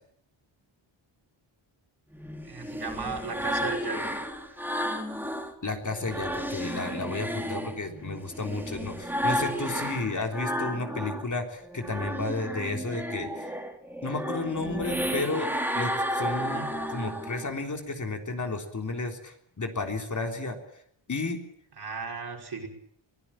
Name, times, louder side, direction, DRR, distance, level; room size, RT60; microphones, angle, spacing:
sound 1, 2.1-5.5 5.9-11.3 11.6-17.5, equal, 5° right, 2.9 m, -32 dB
voice 1, 2.4-4.1 16.5-16.7 21.8-22.7, right 4 dB, 50° right, 2 dB, 5.3 m, -35 dB
voice 2, 5.6-13.5 14.0-20.6 21.1-21.4, left 3 dB, 35° left, 4 dB, 3.8 m, -32 dB
23.5 x 16.0 x 8.9 m, 0.69 s
cardioid pair, 80°, 49 cm